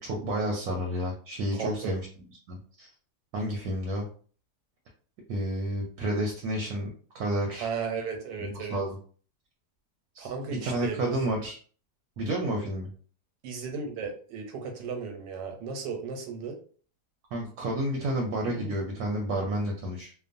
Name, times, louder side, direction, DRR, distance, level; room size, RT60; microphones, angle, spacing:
voice 1, 0.0-2.1 2.5-2.9 3.3-4.0 5.3-6.9 7.1-7.7 8.4-9.0 10.1-11.6 12.2-12.9 17.3-20.1, right 1 dB, 70° right, 0 dB, 1.0 m, -30 dB
voice 2, 1.5-1.9 7.6-8.8 10.2-11.1 13.4-16.6 18.5-18.8, right 5 dB, 85° right, 3 dB, 1.3 m, -35 dB
2.9 x 2.1 x 2.5 m, 0.43 s
omnidirectional pair, 1.9 m